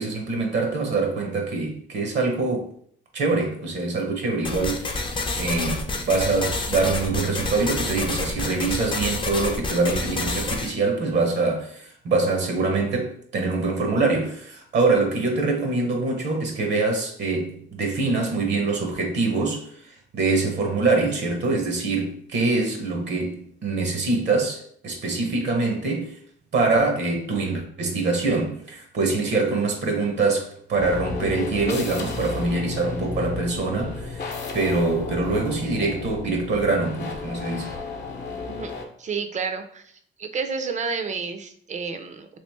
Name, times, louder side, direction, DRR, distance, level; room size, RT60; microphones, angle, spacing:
voice 1, 0.0-2.7 3.1-4.9 5.4-26.2 26.5-37.7, right 3 dB, 60° right, 0.8 m, -24 dB
sound 1, 4.4-10.7, left 3 dB, 25° left, 0.5 m, -28 dB
sound 2, 30.8-38.9, left 4 dB, 60° left, 0.7 m, -33 dB
voice 2, 39.0-39.8 40.2-42.3, right 5 dB, 35° right, 0.5 m, -30 dB
3.0 x 2.5 x 3.3 m
cardioid pair, 90°, 20 cm